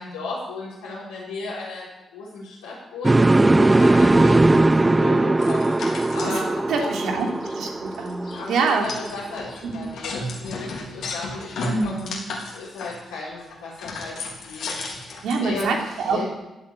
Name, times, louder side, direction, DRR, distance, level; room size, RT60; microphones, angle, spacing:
voice 1, 0.0-1.9 2.1-5.7 6.1-6.9 8.3-11.9 12.5-16.3, left 3 dB, 90° left, -10 dB, 5.5 m, -35 dB
sound 1, 3.0-9.0, right 2 dB, 25° right, 0.4 m, -19 dB
voice 2, 4.7-5.4 6.2-6.3 6.7-7.3 7.5-8.9 9.6-9.9 11.6-12.3 15.2-16.2, right 4 dB, 75° right, 2 dB, 3.1 m, -26 dB
sound 2, 5.4-6.5 6.9-7.0 7.2-7.5 7.9-15.4, left 2 dB, 70° left, 3.7 m, -34 dB
14.5 x 8.4 x 9.0 m, 1.1 s
hypercardioid pair, 45°, 0 cm